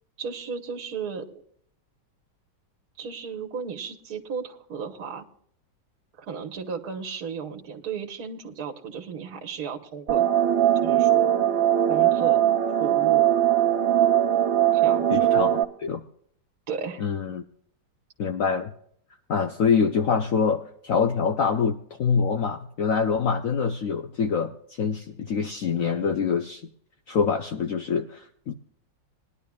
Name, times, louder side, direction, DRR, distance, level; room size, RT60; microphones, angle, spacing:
voice 1, 0.2-1.4 3.0-5.2 6.2-10.3 10.8-11.3 11.9-12.4 12.8-13.2 14.7-15.3 16.7-17.1, right 6 dB, 55° right, 1 dB, 1.7 m, -34 dB
sound 1, 10.1-15.6, right 11 dB, 90° right, 1.7 m, -20 dB
voice 2, 15.1-15.5 15.8-16.0 17.0-17.4 18.2-18.7 19.3-26.6 27.1-28.5, left 6 dB, 60° left, 6 dB, 0.9 m, -25 dB
21.0 x 11.0 x 2.3 m, 0.64 s
omnidirectional pair, 2.0 m